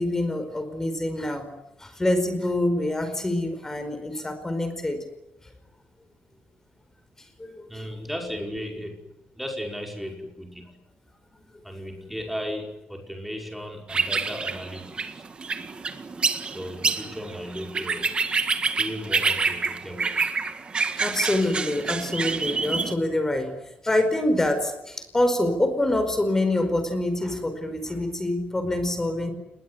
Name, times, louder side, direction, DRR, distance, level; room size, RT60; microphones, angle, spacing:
voice 1, 0.0-1.5 1.8-5.0 7.4-7.7 20.9-23.5 23.8-29.3, left 1 dB, 15° left, 9 dB, 4.8 m, -26 dB
voice 2, 7.7-9.0 9.3-10.8 11.6-15.2 16.4-18.1 18.8-20.2, equal, ahead, 2 dB, 5.6 m, -35 dB
sound 1, 13.9-22.9, right 4 dB, 30° right, 1.9 m, -27 dB
28.0 x 21.0 x 9.8 m, 0.89 s
wide cardioid pair, 160°, 3 cm